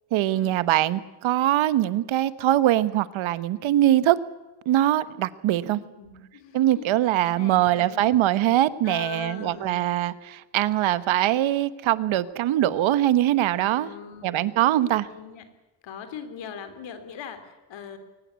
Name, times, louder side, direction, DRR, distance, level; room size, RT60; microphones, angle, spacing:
voice 1, 0.1-4.2 4.7-5.8 6.5-13.9 14.2-15.1, right 13 dB, 80° right, 16 dB, 1.2 m, -22 dB
voice 2, 5.6-6.9 7.2-8.1 8.8-9.8 13.8-15.4 15.8-18.0, left 7 dB, 65° left, 9 dB, 3.4 m, -41 dB
23.0 x 19.0 x 8.2 m, 1.1 s
cardioid pair, 150°, 47 cm